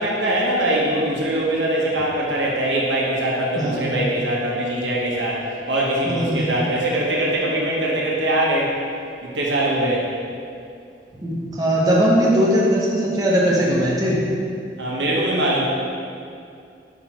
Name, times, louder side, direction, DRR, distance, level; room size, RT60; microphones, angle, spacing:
voice 1, 0.0-8.7 9.2-10.1 14.8-15.6, right 1 dB, 80° right, -4 dB, 1.1 m, -22 dB
voice 2, 3.6-4.0 6.2-6.6 11.2-14.2, equal, 20° right, -6 dB, 0.8 m, -19 dB
5.4 x 4.4 x 4.5 m, 2.4 s
head